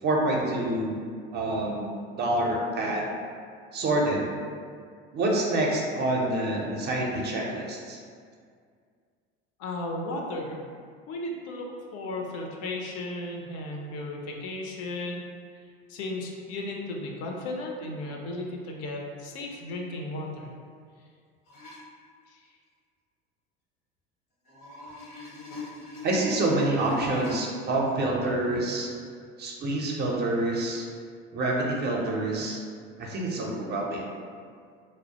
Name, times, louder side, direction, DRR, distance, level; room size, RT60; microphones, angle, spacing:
voice 1, 0.0-0.9 1.3-1.9 2.2-3.0 3.7-4.3 5.1-8.0 26.0-28.9 29.4-30.9 31.3-32.6 33.0-34.0, right 2 dB, 35° right, -2 dB, 0.5 m, -27 dB
voice 2, 9.6-10.6 11.1-15.2 15.6-20.5 22.3-22.4, left 2 dB, 55° left, 0 dB, 0.5 m, -35 dB
sound 1, 21.5-21.8 24.4-27.3 28.2-28.3, left 1 dB, 80° left, 1.0 m, -40 dB
2.2 x 2.1 x 2.7 m, 2.1 s
hypercardioid pair, 90°, 30 cm